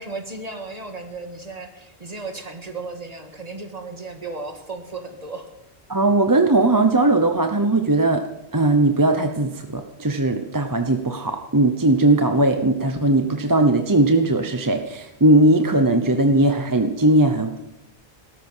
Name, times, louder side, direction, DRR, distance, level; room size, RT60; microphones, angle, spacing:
voice 1, 0.0-5.5, right 3 dB, 35° right, 5 dB, 1.8 m, -35 dB
voice 2, 5.9-8.2 8.5-17.7, right 2 dB, 20° right, 6 dB, 0.8 m, -19 dB
17.0 x 13.5 x 5.6 m, 0.87 s
omnidirectional pair, 1.1 m